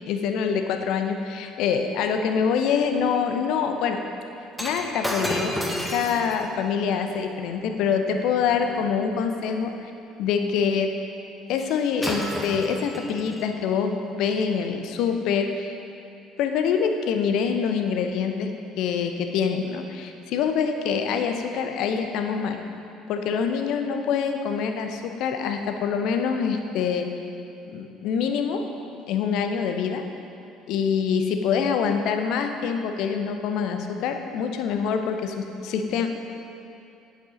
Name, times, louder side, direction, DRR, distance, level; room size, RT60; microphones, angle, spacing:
voice 1, 0.0-4.0 4.6-5.6 5.9-9.9 10.2-10.9 11.5-15.8 16.4-18.5 18.8-22.6 23.1-27.1 27.7-28.6 29.1-30.0 30.7-36.1, left 6 dB, 60° left, 6 dB, 0.7 m, -25 dB
Shatter, 4.5-8.9 11.6-11.7 12.0-13.5 14.3-14.4, equal, ahead, 1.3 m, -33 dB
8.7 x 7.0 x 5.1 m, 2.7 s
figure-of-eight pair, 55°, 0 cm